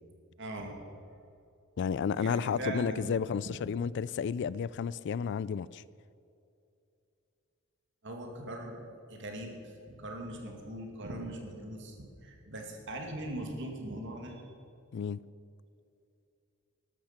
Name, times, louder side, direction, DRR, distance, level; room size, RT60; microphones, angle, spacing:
voice 1, 0.4-0.8 2.1-3.6 8.0-8.8 9.1-14.4, right 1 dB, 60° right, 2.4 m, -40 dB
voice 2, 1.8-5.8 14.9-15.2, left 6 dB, 55° left, 0.3 m, -32 dB
13.0 x 12.0 x 5.9 m
head